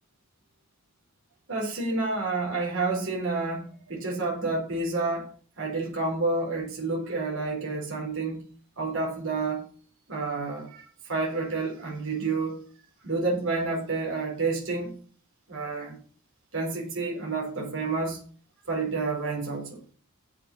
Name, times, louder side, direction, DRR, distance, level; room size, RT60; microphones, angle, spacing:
voice 1, 1.5-5.3 5.6-8.5 8.8-9.6 10.1-12.6 13.0-15.0 15.5-16.0 16.5-18.2 18.7-19.8, right 3 dB, 55° right, 4.1 m, -29 dB
7.9 x 7.5 x 6.4 m
head